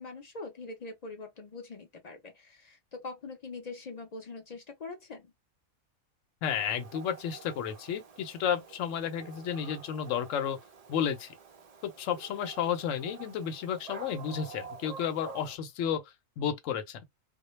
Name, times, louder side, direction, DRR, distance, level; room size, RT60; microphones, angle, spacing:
voice 1, 0.0-5.3, left 3 dB, 50° left, 0.5 m, -43 dB
voice 2, 6.4-10.6 10.9-11.3 11.8-17.0, left 8 dB, 70° left, 0.9 m, -32 dB
Dog, 6.4-15.6, right 6 dB, 75° right, 0.3 m, -48 dB
2.2 x 2.1 x 3.0 m
omnidirectional pair, 1.4 m